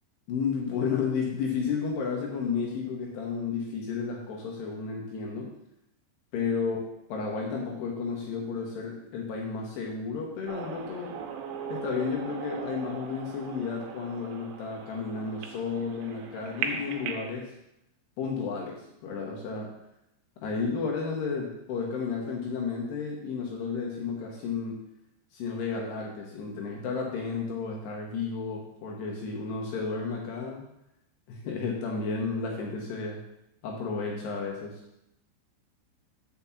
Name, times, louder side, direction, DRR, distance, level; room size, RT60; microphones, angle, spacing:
voice 1, 0.3-5.5 6.3-11.2 11.7-17.5 18.2-19.7 20.4-24.8 25.3-30.6 31.3-33.1 33.6-34.8, left 5 dB, 70° left, -2 dB, 3.0 m, -32 dB
sound 1, 10.5-17.3, right 6 dB, 80° right, 3.2 m, -38 dB
7.2 x 5.2 x 7.1 m, 0.82 s
omnidirectional pair, 5.6 m